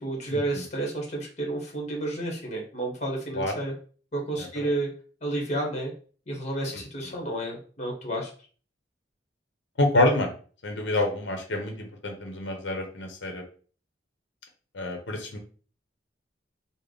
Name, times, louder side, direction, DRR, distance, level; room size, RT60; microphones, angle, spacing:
voice 1, 0.0-3.7 4.1-4.9 5.2-5.9 6.3-8.3, right 1 dB, 40° left, 0 dB, 1.1 m, -31 dB
voice 2, 9.8-10.3 10.6-13.4 14.7-15.4, left 1 dB, 70° left, 3 dB, 0.8 m, -27 dB
3.4 x 2.1 x 3.8 m, 0.41 s
head